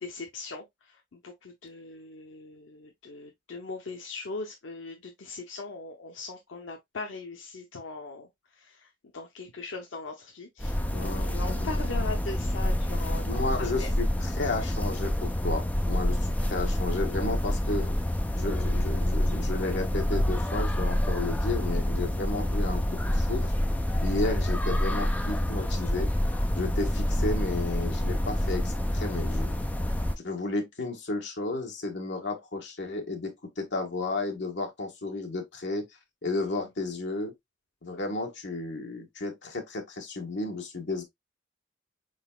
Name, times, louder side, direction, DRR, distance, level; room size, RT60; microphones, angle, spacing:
voice 1, 0.0-13.9 36.3-36.5, left 3 dB, 85° left, 0.7 m, -40 dB
sound 1, 10.6-30.1, left 1 dB, 10° left, 0.5 m, -27 dB
voice 2, 10.9-11.7 13.3-18.0 18.3-23.5 24.0-26.1 26.5-29.5 30.2-35.9 36.2-37.3 37.8-41.0, left 2 dB, 65° left, 1.3 m, -33 dB
4.6 x 3.9 x 2.3 m
head